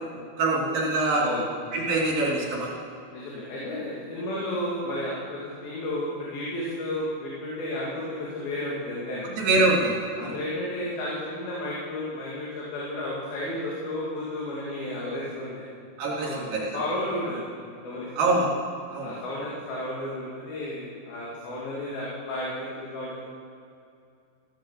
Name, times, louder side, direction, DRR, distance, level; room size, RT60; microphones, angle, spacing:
voice 1, 0.1-1.2 1.7-2.7 9.4-10.3 16.0-16.7 18.2-18.5 18.9-19.1, right 2 dB, 65° right, -4 dB, 5.1 m, -24 dB
voice 2, 1.1-1.5 3.1-9.3 10.2-15.7 16.2-17.4 17.8-18.1 19.0-23.2, left 1 dB, 70° left, -6 dB, 4.4 m, -32 dB
16.0 x 13.0 x 5.8 m, 2.5 s
omnidirectional pair, 4.6 m